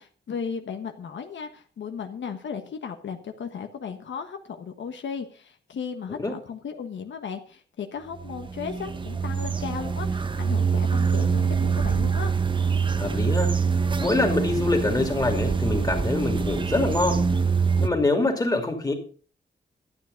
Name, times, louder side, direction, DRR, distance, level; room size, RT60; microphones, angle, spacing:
voice 1, 0.0-12.3, left 6 dB, 90° left, 5 dB, 1.4 m, -35 dB
sound 1, 8.2-17.9, right 5 dB, 25° right, 0.8 m, -25 dB
voice 2, 13.0-13.5 14.0-17.2 17.8-18.9, left 2 dB, 20° left, 4 dB, 2.5 m, -24 dB
12.5 x 9.2 x 5.2 m, 0.40 s
wide cardioid pair, 160°, 19 cm